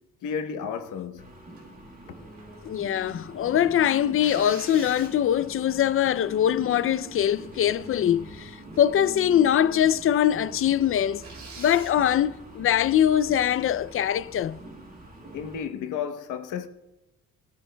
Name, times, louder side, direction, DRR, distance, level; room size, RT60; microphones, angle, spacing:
voice 1, 0.2-1.2 15.3-16.7, left 7 dB, 85° left, 0.9 m, -32 dB
sound 1, 1.2-15.6, right 2 dB, 30° right, 4.2 m, -44 dB
sound 2, 1.6-1.8 2.3-3.2 4.2-5.5 6.1-6.2 6.6-6.9 7.3-8.2 8.7-9.0 9.3-9.4 10.0-10.1 10.3-10.4 11.2-12.0 14.3-14.7, right 4 dB, 70° right, 2.8 m, -45 dB
voice 2, 2.6-11.2 11.6-14.6, left 10 dB, 45° left, 0.4 m, -23 dB
20.5 x 9.7 x 2.2 m
cardioid pair, 90°, 30 cm